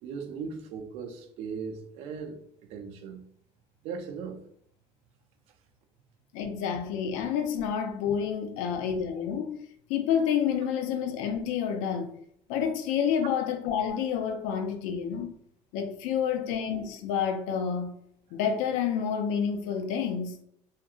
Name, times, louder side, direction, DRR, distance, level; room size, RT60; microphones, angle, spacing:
voice 1, 0.0-2.4 2.7-3.2 3.8-4.4, right 5 dB, 55° right, 0.4 m, -38 dB
voice 2, 6.3-12.1 12.5-15.3 15.7-18.0 18.3-20.4, left 7 dB, 80° left, 0.4 m, -29 dB
2.7 x 2.5 x 2.3 m
cardioid pair, 175°, 12 cm